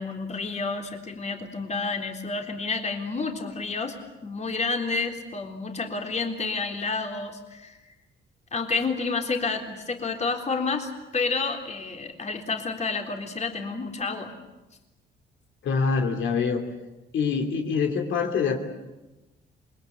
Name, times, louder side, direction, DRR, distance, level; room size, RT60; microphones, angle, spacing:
voice 1, 0.0-3.9 4.2-7.8 8.5-14.3, left 4 dB, 35° left, 3 dB, 3.6 m, -30 dB
voice 2, 15.6-16.6 17.1-18.6, left 5 dB, 75° left, 3 dB, 3.1 m, -25 dB
27.0 x 21.5 x 8.6 m, 1.1 s
cardioid pair, 90°, 20 cm